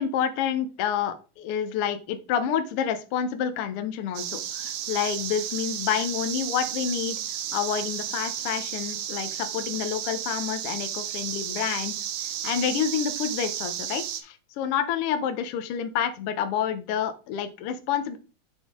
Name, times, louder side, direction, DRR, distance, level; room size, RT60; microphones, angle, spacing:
voice 1, 0.0-7.2 7.5-11.9 12.2-18.2, left 8 dB, 85° left, 8 dB, 1.2 m, -28 dB
sound 1, 4.1-14.2, right 10 dB, 75° right, 1.9 m, -33 dB
8.0 x 4.1 x 3.6 m, 0.34 s
omnidirectional pair, 3.5 m